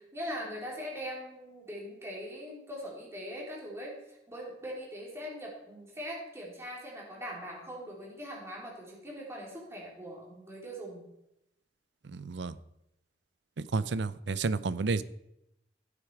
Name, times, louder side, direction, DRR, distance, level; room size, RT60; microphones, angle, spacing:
voice 1, 0.0-11.1, equal, 15° right, -3 dB, 3.6 m, -41 dB
voice 2, 12.0-12.5 13.6-15.0, right 4 dB, 75° right, 16 dB, 0.6 m, -31 dB
15.0 x 8.6 x 4.8 m, 0.85 s
head